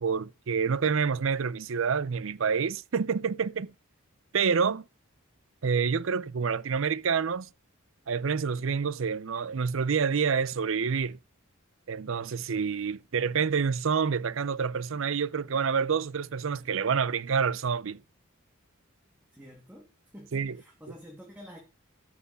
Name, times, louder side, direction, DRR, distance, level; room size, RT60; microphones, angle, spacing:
voice 1, 0.0-3.7 4.3-4.8 5.6-7.5 8.1-11.2 11.9-18.0 20.3-20.6, right 6 dB, 70° right, 0.5 m, -28 dB
voice 2, 19.3-19.9 20.1-21.6, equal, 10° right, 2.5 m, -48 dB
14.0 x 6.1 x 5.4 m
head